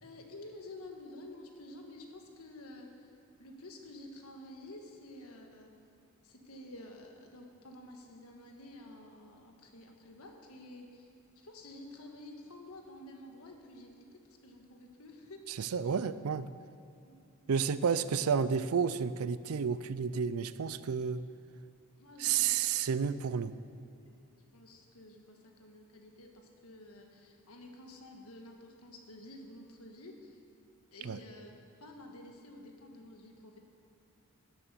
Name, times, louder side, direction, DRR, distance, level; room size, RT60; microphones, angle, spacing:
voice 1, 0.0-5.7 6.2-15.9 17.0-17.7 22.0-23.3 24.0-24.2 24.5-30.4 30.9-33.6, left 1 dB, 80° left, 2 dB, 1.5 m, -51 dB
voice 2, 15.6-16.5 17.5-21.2 22.2-23.6 31.0-31.2, right 6 dB, 75° right, 15 dB, 0.4 m, -31 dB
12.0 x 7.8 x 6.9 m, 2.5 s
head